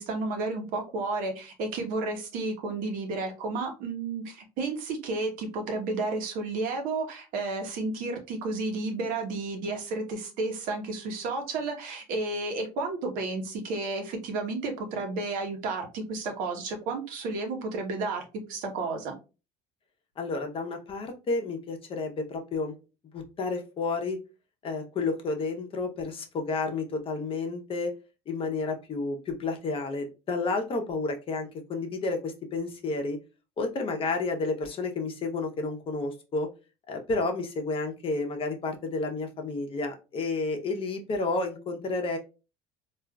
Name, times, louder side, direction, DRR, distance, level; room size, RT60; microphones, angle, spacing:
voice 1, 0.0-19.1, right 3 dB, 65° right, 4 dB, 0.9 m, -32 dB
voice 2, 20.2-22.7 23.1-24.2 24.6-27.9 28.3-33.2 33.6-36.5 36.9-42.2, left 3 dB, 35° left, 4 dB, 0.8 m, -31 dB
3.5 x 2.5 x 2.2 m, 0.30 s
supercardioid pair, 105°, 15 cm